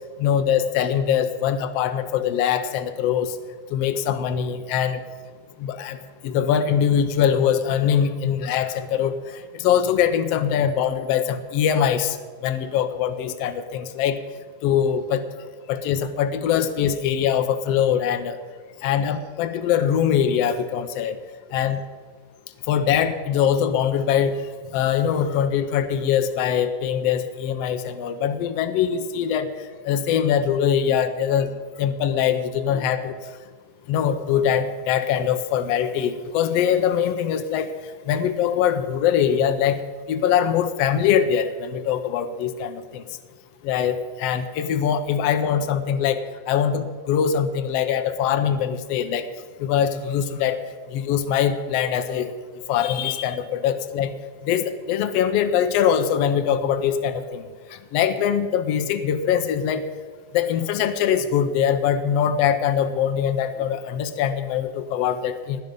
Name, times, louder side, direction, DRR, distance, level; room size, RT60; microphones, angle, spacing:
voice 1, 0.2-3.3 3.7-5.0 5.6-6.0 6.2-12.2 12.4-14.2 14.6-15.2 15.7-18.4 18.8-21.2 21.5-21.8 22.7-24.4 24.7-29.5 29.8-31.5 31.8-33.1 33.9-37.7 38.1-39.8 40.1-43.0 43.6-49.3 49.6-50.6 50.9-52.3 52.7-54.1 54.4-59.9 60.3-65.6, left 8 dB, 90° left, 9 dB, 1.4 m, -22 dB
16.5 x 10.5 x 5.2 m, 1.5 s
omnidirectional pair, 3.7 m